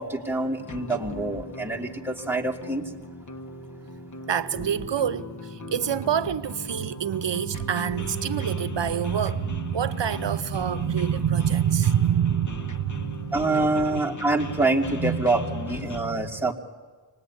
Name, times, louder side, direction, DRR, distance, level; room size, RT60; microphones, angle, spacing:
voice 1, 0.0-2.9 13.3-16.5, right 2 dB, 5° right, 2.8 m, -26 dB
sound 1, 0.6-16.0, left 2 dB, 45° left, 1.4 m, -38 dB
voice 2, 4.3-14.0 14.5-14.6 14.9-16.4, right 9 dB, 80° right, 0.7 m, -27 dB
25.5 x 19.5 x 9.7 m
wide cardioid pair, 65°, 43 cm